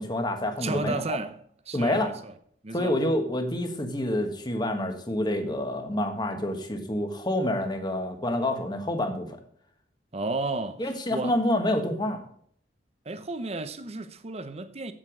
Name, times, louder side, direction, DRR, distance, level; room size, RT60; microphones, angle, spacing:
voice 1, 0.0-1.2 1.7-2.1 2.7-9.4 10.8-12.2, left 1 dB, 25° left, 1.4 m, -28 dB
voice 2, 0.6-2.3 2.6-3.0 10.1-11.4 13.0-14.9, right 3 dB, 35° right, 0.8 m, -33 dB
8.1 x 7.6 x 5.1 m
head